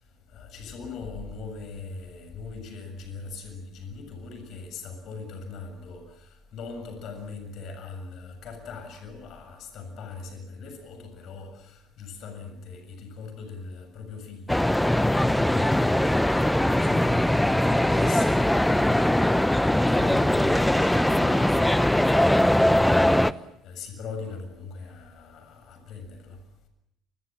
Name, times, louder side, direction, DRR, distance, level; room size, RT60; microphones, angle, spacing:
voice 1, 0.3-15.9 16.3-19.2 19.7-23.2 23.6-26.4, left 4 dB, 50° left, 7 dB, 7.2 m, -40 dB
sound 1, 14.5-23.3, left 1 dB, 5° left, 0.9 m, -21 dB
28.5 x 22.5 x 7.5 m, 0.77 s
figure-of-eight pair, 60°, 0 cm